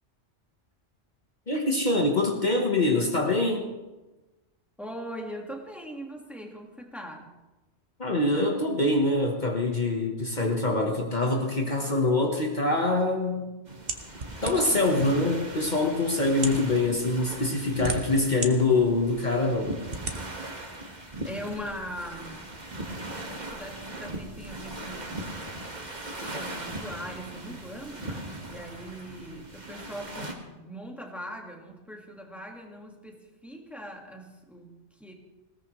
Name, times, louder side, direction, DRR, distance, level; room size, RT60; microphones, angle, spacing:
voice 1, 1.5-3.6 8.0-13.6 14.4-19.8, left 2 dB, 40° left, 1 dB, 1.4 m, -24 dB
voice 2, 4.8-7.3 21.2-22.5 23.3-25.4 26.3-35.2, equal, ahead, 1 dB, 1.8 m, -41 dB
sound 1, 13.7-30.3, right 1 dB, 40° right, 1.8 m, -39 dB
sound 2, 13.9-14.9 15.7-15.8 16.3-16.7 17.4-18.5 19.0-19.1 19.9-20.2, right 3 dB, 55° right, 1.4 m, -33 dB
20.0 x 17.5 x 3.2 m, 1.1 s
omnidirectional pair, 1.1 m